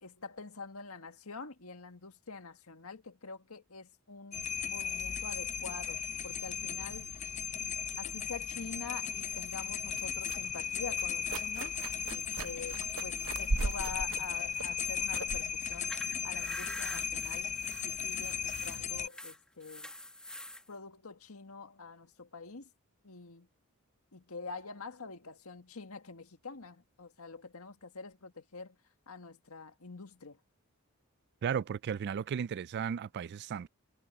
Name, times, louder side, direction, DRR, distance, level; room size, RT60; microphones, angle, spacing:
voice 1, 0.0-7.1 8.0-11.8 12.1-16.0 16.2-17.5 17.8-19.9 20.7-22.7 23.0-23.5 24.1-28.8 29.1-30.4, left 4 dB, 85° left, 1.8 m, -46 dB
sound 1, 4.3-19.1, left 7 dB, 35° left, 0.6 m, -36 dB
sound 2, 9.1-16.9, right 3 dB, 70° right, 0.8 m, -40 dB
sound 3, 15.6-20.6, left 1 dB, 5° left, 1.5 m, -46 dB
voice 2, 31.4-33.7, right 7 dB, 50° right, 0.3 m, -35 dB
head